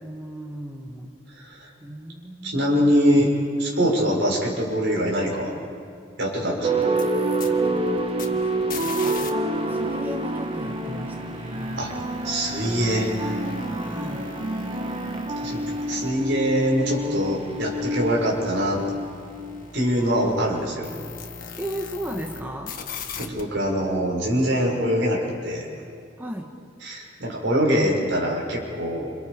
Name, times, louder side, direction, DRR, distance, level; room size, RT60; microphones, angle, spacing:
voice 1, 0.0-1.2 1.8-2.9 3.8-3.9 7.5-9.3 9.7-11.9 13.7-14.4 21.6-22.8 26.2-26.5, right 1 dB, 10° right, 1 dB, 1.5 m, -36 dB
voice 2, 1.4-1.7 2.4-3.3 3.6-5.5 6.2-6.9 11.8-11.9 12.2-13.3 15.4-15.6 15.9-18.8 19.7-20.9 23.2-25.7 26.8-29.2, equal, 70° right, -2 dB, 6.5 m, -23 dB
sound 1, 6.6-20.0, right 2 dB, 30° right, 1.6 m, -27 dB
sound 2, 6.8-9.3 9.5-22.4 22.7-23.4, left 5 dB, 45° left, 1.7 m, -41 dB
29.0 x 28.5 x 5.2 m, 2.4 s
head